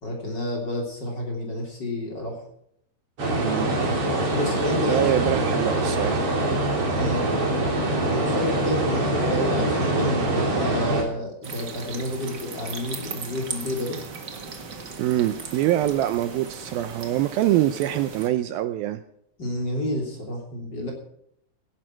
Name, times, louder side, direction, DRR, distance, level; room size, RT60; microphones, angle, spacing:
voice 1, 0.0-2.4 4.3-5.1 7.0-7.3 8.0-14.0 19.4-20.9, left 1 dB, 30° left, 0 dB, 3.3 m, -29 dB
sound 1, 3.2-11.0, right 1 dB, 35° right, 3.7 m, -24 dB
voice 2, 3.3-3.8 4.9-6.3 15.0-19.0, right 13 dB, 80° right, 10 dB, 2.3 m, -24 dB
sound 2, 11.4-18.3, right 4 dB, 60° right, 1.0 m, -37 dB
17.5 x 11.0 x 4.5 m, 0.73 s
omnidirectional pair, 4.6 m